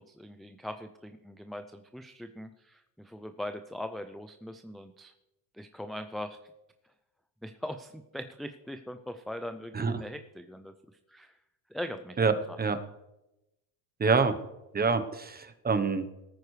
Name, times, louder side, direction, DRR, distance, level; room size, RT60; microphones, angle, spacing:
voice 1, 0.0-5.1 5.5-6.4 7.4-10.7 11.1-11.3 11.7-12.6, left 1 dB, ahead, 7 dB, 0.3 m, -41 dB
voice 2, 14.0-14.3 14.7-16.0, right 4 dB, 20° right, 10 dB, 1.0 m, -26 dB
18.0 x 9.3 x 3.3 m, 0.95 s
supercardioid pair, 95°, 48 cm